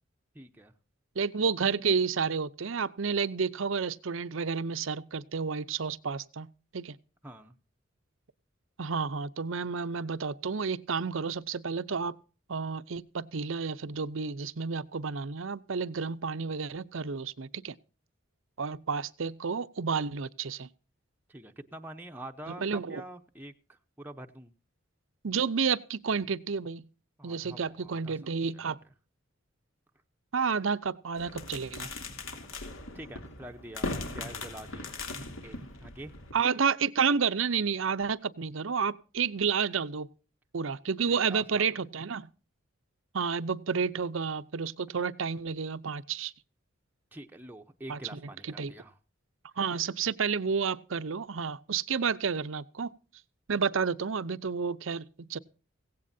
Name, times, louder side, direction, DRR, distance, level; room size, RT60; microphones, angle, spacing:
voice 1, 0.3-0.7 7.2-7.5 21.3-24.5 27.2-28.7 32.5-32.6 32.9-34.8 35.4-36.1 41.1-41.7 47.1-49.0, right 1 dB, 10° right, 0.7 m, -46 dB
voice 2, 1.2-6.5 6.7-7.0 8.8-12.2 12.5-17.7 18.6-20.7 22.5-23.0 25.2-26.9 27.2-28.8 30.3-31.9 36.3-40.1 40.5-42.3 43.1-46.3 47.9-48.7 49.6-52.9 53.5-55.4, right 5 dB, 70° right, 0.7 m, -30 dB
sound 1, 31.2-36.3, left 2 dB, 80° left, 2.8 m, -39 dB
16.5 x 16.0 x 2.7 m
head